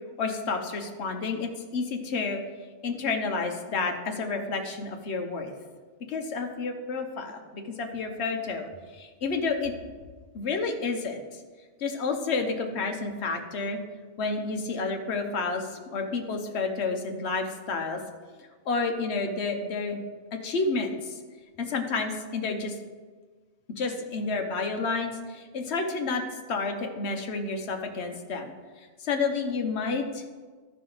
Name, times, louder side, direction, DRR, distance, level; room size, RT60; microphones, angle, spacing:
voice 1, 0.2-2.4 2.8-5.5 6.1-9.7 10.3-11.2 11.8-13.8 14.2-18.0 18.7-20.0 20.3-21.2 21.6-22.7 23.8-26.2 26.5-28.5 29.0-30.2, left 4 dB, 60° left, 4 dB, 1.1 m, -30 dB
14.0 x 4.9 x 3.9 m, 1.4 s
omnidirectional pair, 1.3 m